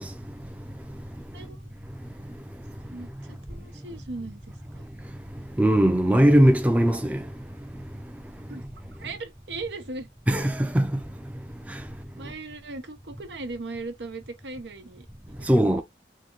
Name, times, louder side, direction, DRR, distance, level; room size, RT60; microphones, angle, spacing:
voice 1, 1.3-1.7 2.9-4.9 8.5-10.1 12.2-15.6, right 3 dB, 90° right, 0.9 m, -38 dB
voice 2, 5.6-7.2 10.3-10.9 15.5-15.8, right 1 dB, 10° right, 0.4 m, -19 dB
3.7 x 2.7 x 2.9 m
head